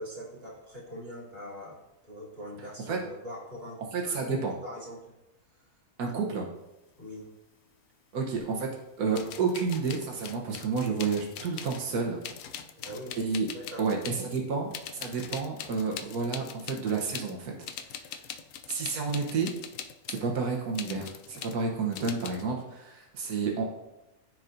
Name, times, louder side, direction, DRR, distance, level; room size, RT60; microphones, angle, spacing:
voice 1, 0.0-1.8 2.0-5.0 7.0-7.3 12.8-13.2 13.5-13.9, equal, 40° right, -6 dB, 2.5 m, -42 dB
voice 2, 3.9-4.5 6.0-6.5 8.1-8.7 9.0-12.2 13.2-13.5 13.8-17.5 18.7-19.5 20.1-23.7, right 4 dB, 85° right, 0 dB, 1.5 m, -30 dB
sound 1, 8.4-8.5 9.1-11.9 12.2-14.4 14.7-17.3 17.6-20.3 20.7-21.6 21.9-22.4, left 8 dB, 70° left, 0.9 m, -42 dB
13.5 x 4.7 x 2.6 m, 0.95 s
omnidirectional pair, 1.6 m